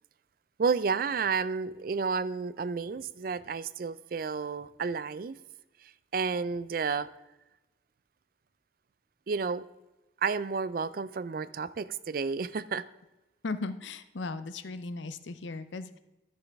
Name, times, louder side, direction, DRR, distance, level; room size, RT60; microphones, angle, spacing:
voice 1, 0.6-5.4 5.8-7.1 9.3-9.6 10.2-12.8, right 5 dB, 50° right, 16 dB, 0.4 m, -31 dB
voice 2, 13.4-16.0, left 3 dB, 75° left, 12 dB, 0.6 m, -37 dB
14.0 x 6.0 x 3.5 m, 1.0 s
head